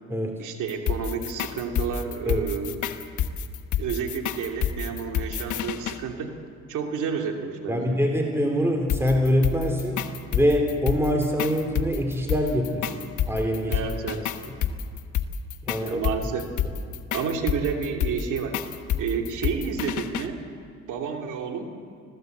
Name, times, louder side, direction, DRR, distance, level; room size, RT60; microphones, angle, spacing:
voice 1, 0.4-2.9 3.8-6.3 6.7-8.0 13.7-14.3 15.7-16.5 17.1-18.6 19.0-20.4 20.9-21.8, right 6 dB, 85° right, 3 dB, 2.7 m, -30 dB
sound 1, 0.7-6.0 8.9-20.3, left 9 dB, 75° left, 1.2 m, -28 dB
voice 2, 7.7-13.8 15.7-16.0, equal, 10° right, 2 dB, 2.9 m, -24 dB
25.5 x 16.0 x 8.0 m, 2.2 s
cardioid pair, 90°, 30 cm